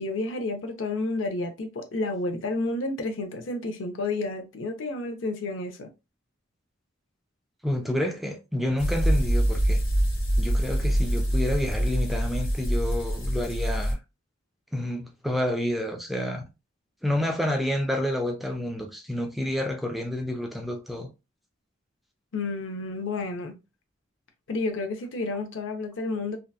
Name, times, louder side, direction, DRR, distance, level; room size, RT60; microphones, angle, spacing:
voice 1, 0.0-5.9 22.3-23.5 24.5-26.4, left 2 dB, 70° left, 0.5 m, -30 dB
voice 2, 7.6-9.8 10.4-14.0 14.7-16.4 17.0-21.1, left 1 dB, ahead, 0.3 m, -29 dB
sound 1, 8.8-13.9, equal, 85° left, 1.1 m, -25 dB
2.7 x 2.2 x 2.2 m
head